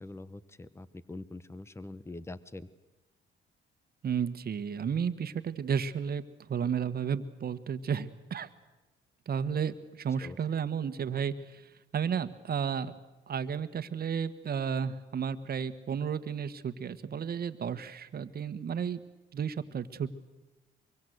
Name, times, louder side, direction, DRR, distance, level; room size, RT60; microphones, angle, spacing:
voice 1, 0.0-2.7 10.2-10.4, left 2 dB, 15° left, 16 dB, 1.1 m, -44 dB
voice 2, 4.0-6.2 6.5-8.5 9.3-11.6 11.9-12.9 13.3-19.0 19.3-20.1, right 7 dB, 50° right, 12 dB, 1.5 m, -32 dB
24.0 x 23.5 x 8.1 m, 1.1 s
cardioid pair, 90°, 20 cm